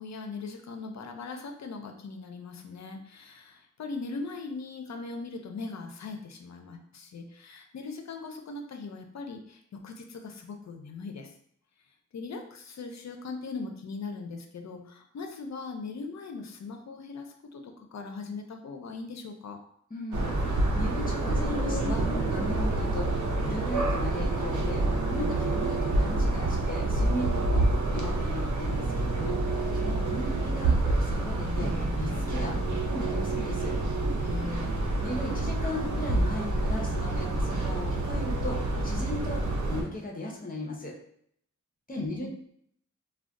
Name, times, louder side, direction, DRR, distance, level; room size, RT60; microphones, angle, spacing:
voice 1, 0.0-11.3 12.1-19.6 34.2-34.7 42.0-42.3, left 4 dB, 65° left, 4 dB, 0.5 m, -40 dB
voice 2, 19.9-27.6 27.9-33.7 35.0-40.9 41.9-42.3, left 1 dB, 30° left, -2 dB, 0.7 m, -37 dB
sound 1, 20.1-39.8, right 2 dB, 75° right, 0.6 m, -28 dB
2.3 x 2.2 x 3.6 m, 0.67 s
wide cardioid pair, 100°, 30 cm